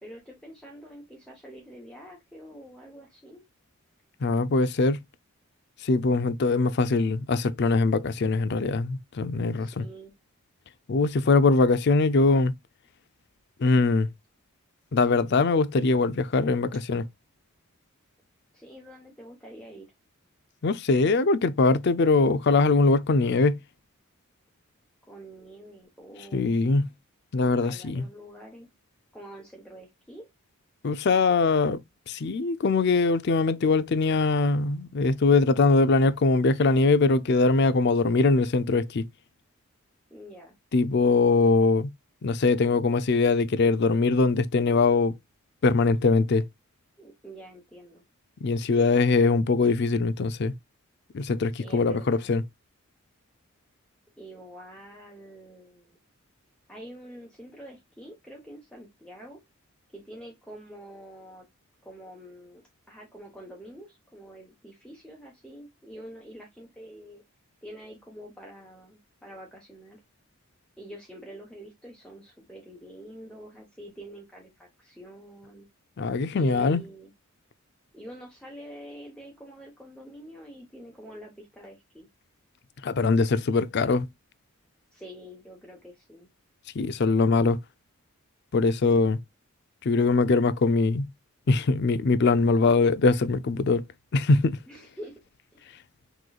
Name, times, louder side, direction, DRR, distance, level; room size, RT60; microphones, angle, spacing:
voice 1, 0.0-3.4 9.6-10.1 18.5-19.9 25.1-26.5 27.6-28.7 29.1-30.3 40.1-40.6 47.0-48.0 51.5-52.3 54.2-56.0 56.7-59.4 59.9-61.5 61.8-67.2 67.6-70.0 70.8-75.7 76.3-77.1 77.9-82.1 84.9-86.3 94.7-95.2 95.5-95.8, right 1 dB, 5° left, 1.1 m, -46 dB
voice 2, 4.2-5.0 5.8-9.9 10.9-12.5 13.6-14.1 14.9-17.0 20.6-23.6 26.3-26.9 27.3-28.0 30.8-31.8 32.1-39.0 40.7-41.9 42.2-45.2 45.6-46.4 48.4-50.5 51.1-52.4 76.0-76.8 82.8-84.1 86.8-87.6 88.5-89.2 89.8-91.1 91.5-93.8 94.1-94.6, left 3 dB, 50° left, 0.4 m, -22 dB
6.2 x 3.1 x 2.3 m
head